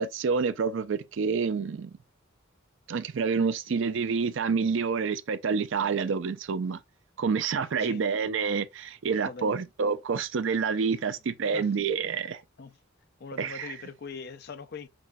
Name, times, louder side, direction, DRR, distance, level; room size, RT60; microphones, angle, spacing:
voice 1, 0.0-1.9 2.9-6.8 7.2-12.4 13.4-13.7, right 5 dB, 60° right, 0.4 m, -28 dB
voice 2, 9.3-9.6 11.5-11.7 12.6-12.8 13.2-14.9, left 5 dB, 50° left, 0.4 m, -41 dB
6.0 x 2.2 x 2.5 m
head